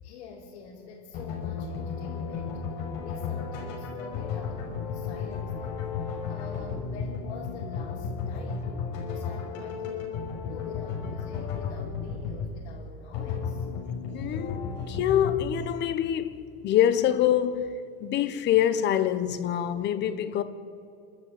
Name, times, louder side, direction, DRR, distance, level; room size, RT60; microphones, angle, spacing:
voice 1, 0.0-5.8 6.1-8.8 9.1-10.1 10.4-13.7, left 4 dB, 85° left, 4.7 m, -46 dB
sound 1, 1.1-15.5, left 5 dB, 50° left, 5.6 m, -34 dB
voice 2, 14.1-17.7 18.0-20.4, left 10 dB, 35° left, 1.1 m, -25 dB
28.0 x 13.0 x 8.8 m
supercardioid pair, 160°, 32 cm